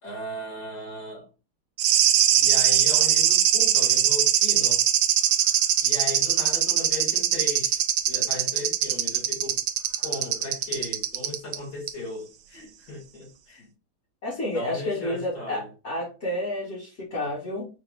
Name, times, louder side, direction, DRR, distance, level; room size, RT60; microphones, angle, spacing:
voice 1, 0.0-1.3 2.4-4.8 5.8-9.6 10.0-13.7 14.5-15.7, left 1 dB, 75° left, 2.8 m, -36 dB
sound 1, 1.8-11.6 11.9-12.0, right 11 dB, 75° right, 1.1 m, -21 dB
voice 2, 14.2-17.7, left 1 dB, 40° left, 1.2 m, -30 dB
5.1 x 2.1 x 3.3 m
omnidirectional pair, 2.3 m